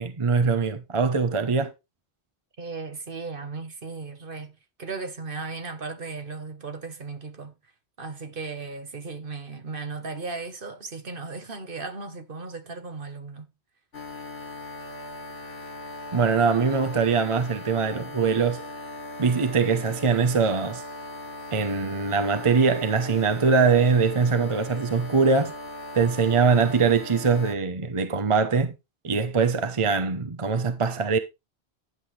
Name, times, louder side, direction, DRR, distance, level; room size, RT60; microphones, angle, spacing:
voice 1, 0.0-1.7 16.1-18.7 19.2-20.8 21.5-25.5 25.9-28.7 29.0-31.2, right 5 dB, 30° right, 0.8 m, -22 dB
voice 2, 2.6-7.6 8.0-13.5, right 4 dB, 55° right, 1.4 m, -36 dB
sound 1, 13.9-27.5, left 2 dB, 65° left, 1.7 m, -39 dB
10.5 x 7.7 x 3.3 m
omnidirectional pair, 1.1 m